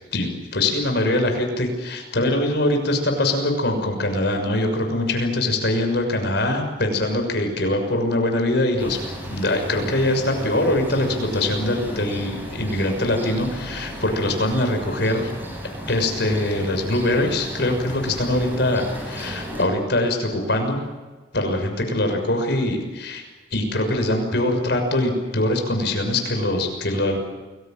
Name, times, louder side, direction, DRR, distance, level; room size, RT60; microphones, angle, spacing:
voice 1, 0.1-9.0 9.3-15.3 15.9-20.8 21.3-23.2 23.5-27.2, left 1 dB, 65° left, 4 dB, 6.3 m, -23 dB
sound 1, 8.8-19.6, equal, 10° right, 7.3 m, -34 dB
30.0 x 21.5 x 7.6 m, 1.3 s
head